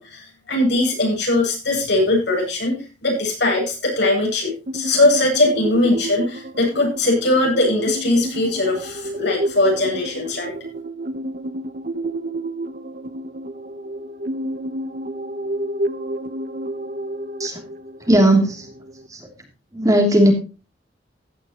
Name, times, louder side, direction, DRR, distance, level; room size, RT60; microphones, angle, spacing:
voice 1, 0.0-10.5, left 2 dB, 65° left, -1 dB, 8.0 m, -20 dB
sound 1, 4.7-19.1, right 1 dB, 50° right, 1.0 m, -30 dB
voice 2, 18.1-18.7 19.1-19.3 19.7-20.3, right 1 dB, 20° right, 2 dB, 3.0 m, -16 dB
15.5 x 10.5 x 3.0 m, 0.32 s
head